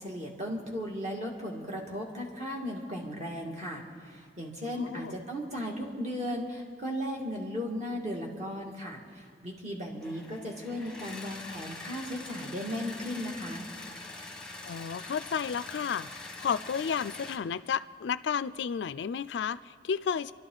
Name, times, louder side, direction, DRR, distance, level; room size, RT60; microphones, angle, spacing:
voice 1, 0.0-13.6, equal, 40° right, -1 dB, 2.2 m, -36 dB
voice 2, 4.8-5.1 14.6-20.3, left 7 dB, 80° left, 16 dB, 0.4 m, -32 dB
sound 1, 10.0-17.4, left 2 dB, 5° left, 1.0 m, -44 dB
28.0 x 12.0 x 3.9 m, 2.1 s
head